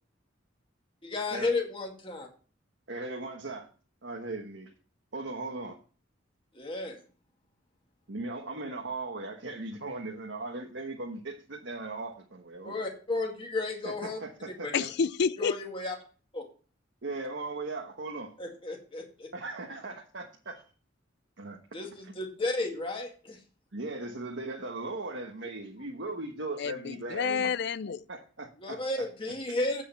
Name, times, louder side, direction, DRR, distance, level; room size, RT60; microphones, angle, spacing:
voice 1, 1.0-2.3 6.5-7.0 12.6-14.2 14.6-14.8 15.4-16.0 16.3-16.4 18.4-19.3 21.7-23.4 28.6-29.8, left 2 dB, 30° left, 2.1 m, -33 dB
voice 2, 2.9-3.7 4.0-4.7 5.1-5.8 8.1-12.8 13.8-14.9 17.0-18.4 19.3-20.6 21.4-21.6 23.7-27.5 28.1-28.8, right 2 dB, 70° right, 1.3 m, -38 dB
voice 3, 14.7-15.5 26.6-28.0, left 6 dB, 60° left, 0.5 m, -29 dB
8.5 x 6.4 x 5.7 m
head